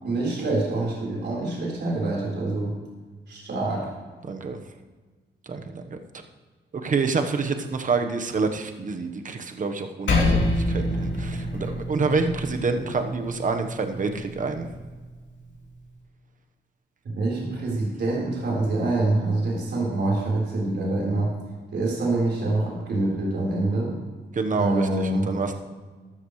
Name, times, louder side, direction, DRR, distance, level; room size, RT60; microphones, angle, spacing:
voice 1, 0.0-2.8 3.3-3.9 17.0-21.3 21.7-23.9 24.5-25.3, right 2 dB, 65° right, -3 dB, 4.2 m, -25 dB
voice 2, 4.2-4.6 5.5-6.0 6.8-14.7 24.3-25.5, right 4 dB, 45° right, 6 dB, 1.2 m, -27 dB
Percussion, 10.1-14.9, left 2 dB, 75° left, 2.9 m, -27 dB
13.5 x 13.0 x 3.2 m, 1.4 s
cardioid pair, 100°, 19 cm